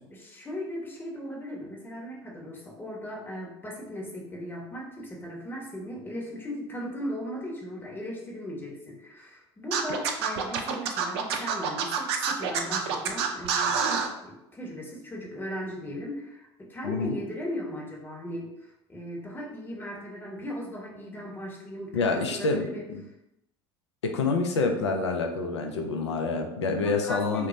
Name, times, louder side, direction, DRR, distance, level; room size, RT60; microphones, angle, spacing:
voice 1, 0.1-22.8 26.8-27.5, equal, 15° left, -2 dB, 0.8 m, -37 dB
Scratching (performance technique), 9.7-14.1, right 7 dB, 70° right, 0.4 m, -27 dB
voice 2, 16.8-17.2 21.9-23.0 24.0-27.5, left 3 dB, 85° left, 4 dB, 0.4 m, -27 dB
2.1 x 2.0 x 3.8 m, 0.86 s
hypercardioid pair, 70°, 14 cm